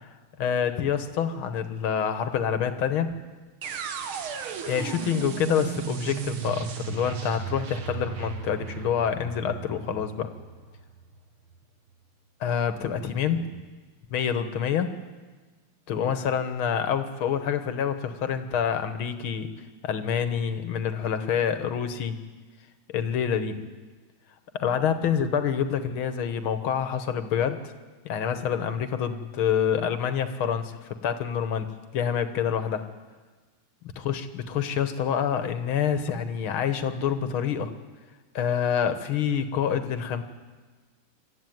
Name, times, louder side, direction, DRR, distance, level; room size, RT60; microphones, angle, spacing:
voice 1, 0.4-3.2 4.7-10.3 12.4-13.4 14.1-14.9 15.9-19.5 19.8-22.2 22.9-23.6 24.5-27.7 28.1-30.7 31.0-31.7 31.9-32.8 34.0-37.7 38.3-40.2, left 8 dB, 85° left, 10 dB, 2.1 m, -27 dB
sound 1, 3.6-11.6, right 7 dB, 85° right, 2.1 m, -35 dB
25.0 x 13.5 x 9.4 m, 1.4 s
omnidirectional pair, 2.2 m